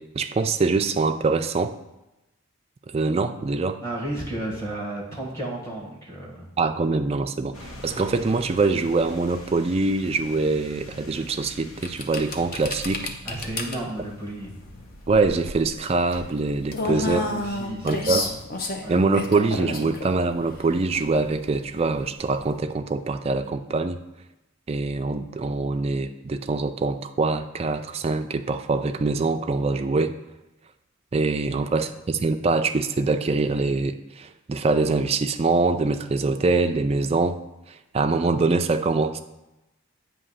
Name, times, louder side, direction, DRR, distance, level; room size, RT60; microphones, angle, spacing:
voice 1, 0.0-1.8 2.9-3.8 6.6-13.1 15.1-17.2 17.8-18.3 18.9-24.0 24.7-30.1 31.1-37.4 37.9-39.2, right 3 dB, 30° right, 8 dB, 0.3 m, -24 dB
voice 2, 3.8-6.5 13.2-14.5 16.8-18.4 18.8-19.0 31.8-31.9, right 1 dB, 15° left, -3 dB, 1.3 m, -33 dB
sound 1, 7.5-17.7, left 1 dB, 80° left, 1.1 m, -46 dB
sound 2, 11.8-22.6, left 2 dB, 40° left, 0.6 m, -32 dB
8.5 x 2.9 x 5.5 m, 0.94 s
head